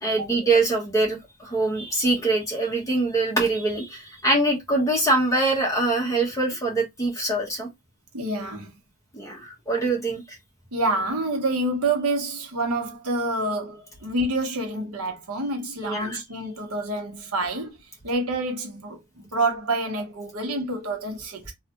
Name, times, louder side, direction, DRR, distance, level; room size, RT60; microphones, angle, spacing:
voice 1, 0.0-7.7 9.1-10.2 15.8-16.2, right 2 dB, 15° left, 1.2 m, -24 dB
voice 2, 8.1-8.7 10.7-17.8 18.0-21.5, right 2 dB, 75° right, 1.0 m, -27 dB
3.2 x 2.4 x 2.9 m
head